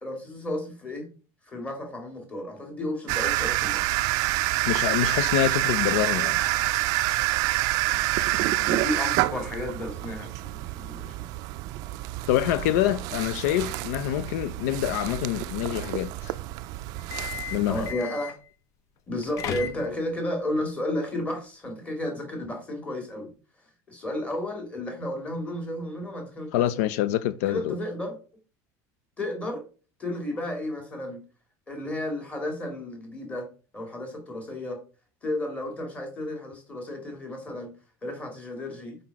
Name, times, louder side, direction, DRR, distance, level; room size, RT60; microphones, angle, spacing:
voice 1, 0.0-1.1 1.5-3.8 8.6-11.1 17.7-18.3 19.1-23.3 23.9-26.9 27.5-28.2 29.2-29.6 30.0-31.2 31.7-33.5 33.7-34.8 35.2-37.7 38.0-39.0, left 1 dB, 15° left, 2.2 m, -32 dB
sound 1, 3.1-17.9, right 18 dB, 50° right, 0.4 m, -28 dB
voice 2, 4.7-6.4 12.3-16.4 17.5-17.9 26.5-27.8, left 12 dB, 85° left, 0.5 m, -26 dB
sound 2, 17.0-18.5 19.1-20.2, left 9 dB, 40° left, 0.7 m, -36 dB
5.8 x 5.2 x 4.7 m
cardioid pair, 165°, 8 cm